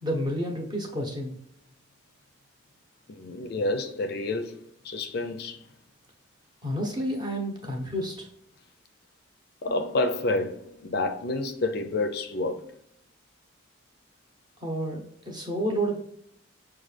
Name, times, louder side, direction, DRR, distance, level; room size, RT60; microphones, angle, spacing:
voice 1, 0.0-1.4 6.6-8.3 14.6-16.1, equal, 20° right, 0.9 m, -30 dB
voice 2, 3.1-4.6 4.8-5.6 9.6-12.6, left 2 dB, 55° left, 0.4 m, -29 dB
Bass guitar, 9.7-12.0, left 2 dB, 45° right, 1.0 m, -49 dB
6.0 x 2.3 x 3.2 m
head